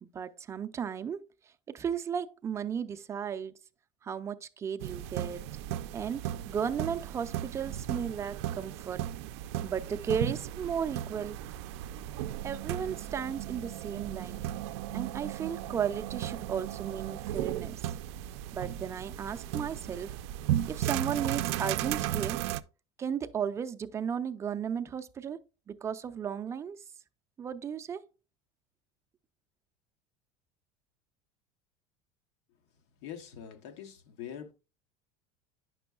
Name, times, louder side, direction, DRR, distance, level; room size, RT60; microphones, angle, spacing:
voice 1, 0.0-1.2 1.7-3.6 4.0-5.4 5.9-9.0 9.6-11.4 12.4-14.5 14.9-17.8 18.5-20.2 20.7-22.4 23.0-25.4 25.7-26.8 27.4-28.0, right 7 dB, 20° right, 0.4 m, -35 dB
sound 1, 4.8-22.6, right 12 dB, 80° right, 0.4 m, -35 dB
voice 2, 33.0-34.5, left 9 dB, 85° left, 1.0 m, -43 dB
9.2 x 6.1 x 2.3 m
cardioid pair, 145°, 14 cm